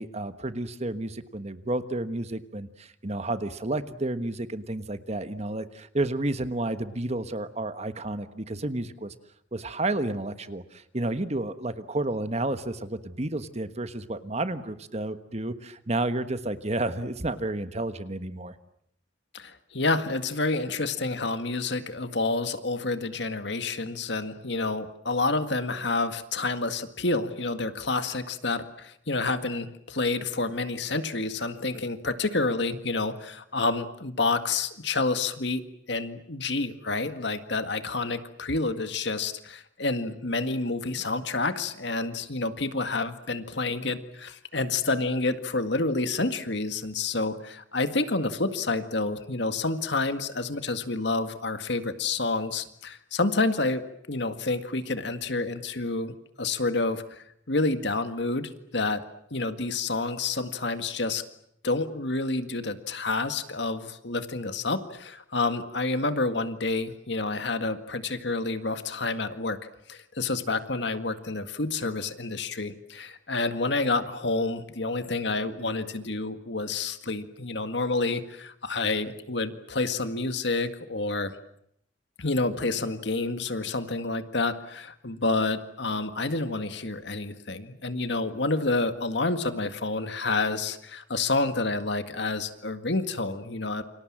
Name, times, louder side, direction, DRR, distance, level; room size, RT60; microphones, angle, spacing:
voice 1, 0.0-9.1 9.5-18.5, right 2 dB, 35° right, 11 dB, 1.4 m, -31 dB
voice 2, 19.3-59.0 59.3-61.2 61.6-69.6 69.9-81.4 82.2-93.8, left 3 dB, 65° left, 9 dB, 1.9 m, -29 dB
29.0 x 25.5 x 7.5 m, 0.71 s
head